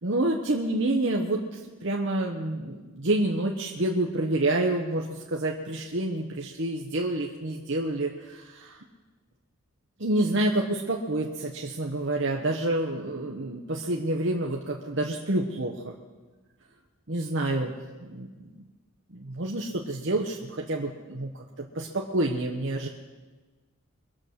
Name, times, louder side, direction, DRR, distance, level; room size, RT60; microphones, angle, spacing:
voice 1, 0.0-8.8 10.0-15.9 17.1-17.7 18.0-18.5 19.1-22.9, right 1 dB, 55° right, 0 dB, 1.0 m, -28 dB
22.5 x 7.5 x 6.4 m, 1.3 s
head